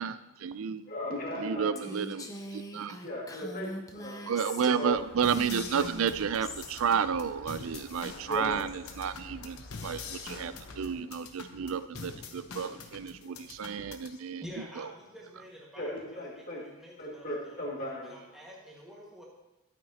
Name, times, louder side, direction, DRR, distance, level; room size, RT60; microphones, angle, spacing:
voice 1, 0.0-0.9 1.4-3.0 4.3-14.4 14.8-14.9, right 7 dB, 70° right, 14 dB, 0.4 m, -31 dB
voice 2, 0.9-1.9 2.2-2.3 3.0-5.0 8.3-8.9 15.8-16.6 17.0-18.2, left 1 dB, 40° left, -3 dB, 2.1 m, -37 dB
Female speech woman speaking, 1.8-4.9 5.2-6.8, left 1 dB, 15° left, 0.6 m, -42 dB
sound 1, 4.8-11.0, left 1 dB, 60° left, 1.4 m, -51 dB
sound 2, 5.2-14.2, left 4 dB, 80° left, 1.0 m, -45 dB
voice 3, 14.4-17.6 18.0-19.2, equal, ahead, -5 dB, 1.7 m, -48 dB
12.5 x 8.6 x 2.9 m, 1.0 s
head